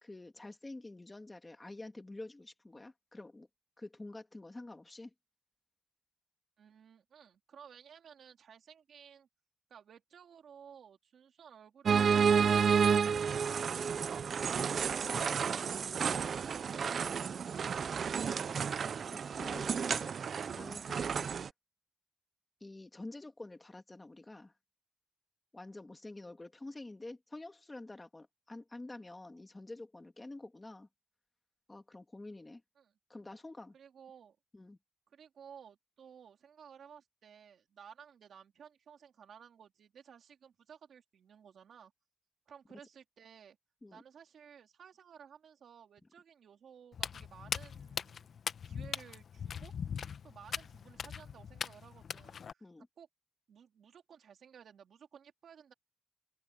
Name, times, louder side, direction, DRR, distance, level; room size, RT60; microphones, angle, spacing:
voice 1, 0.0-3.5 3.8-5.1 19.1-20.1 20.6-21.3 22.6-24.5 25.5-30.9 31.7-32.6 33.1-33.7 34.5-34.8 43.8-44.0 52.6-52.9, left 2 dB, 15° left, 2.2 m, -48 dB
voice 2, 6.6-9.3 9.7-15.1 15.9-17.3 32.8-32.9 33.7-34.4 35.1-41.9 42.5-43.6 43.9-48.3 48.6-49.7 50.2-53.1 53.5-55.7, right 7 dB, 85° right, 3.2 m, -56 dB
sound 1, 11.9-21.5, right 6 dB, 60° right, 0.3 m, -31 dB
Walk footsteps, 46.9-52.5, left 7 dB, 60° left, 0.8 m, -40 dB
open air
wide cardioid pair, 155°, 0 cm